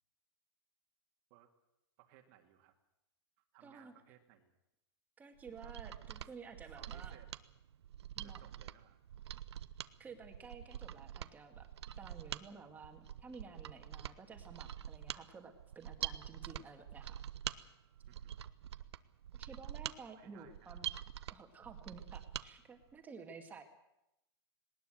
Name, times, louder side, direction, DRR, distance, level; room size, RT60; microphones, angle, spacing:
voice 1, 2.0-2.7 3.5-4.5 5.6-5.8 6.8-7.3 8.2-9.0 18.1-18.4 20.0-20.8, right 12 dB, 40° right, 4 dB, 2.1 m, -63 dB
voice 2, 3.6-3.9 5.2-7.2 8.2-8.4 10.0-11.7 11.9-17.2 19.3-20.9 21.3-23.6, right 5 dB, 10° right, 4 dB, 2.1 m, -53 dB
Mechanisms, 5.4-22.5 22.8-22.9, right 10 dB, 80° right, 0.9 m, -46 dB
19.5 x 19.0 x 7.8 m, 0.88 s
supercardioid pair, 160°, 14 cm